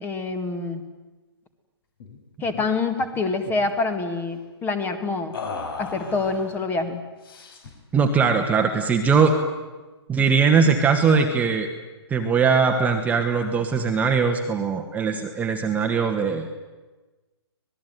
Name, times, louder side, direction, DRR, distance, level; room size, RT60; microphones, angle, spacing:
voice 1, 0.0-0.8 2.4-5.3 5.8-7.0, left 3 dB, 15° left, 9 dB, 2.2 m, -26 dB
sound 1, 2.0-2.2 2.4-2.7 3.0-3.7 5.3-6.6 7.2-7.8, left 4 dB, 55° left, 5.9 m, -36 dB
voice 2, 7.9-9.4 10.1-11.7 12.1-16.5, right 5 dB, 10° right, 3 dB, 1.7 m, -20 dB
25.5 x 19.5 x 9.5 m, 1.2 s
hypercardioid pair, 140°, 14 cm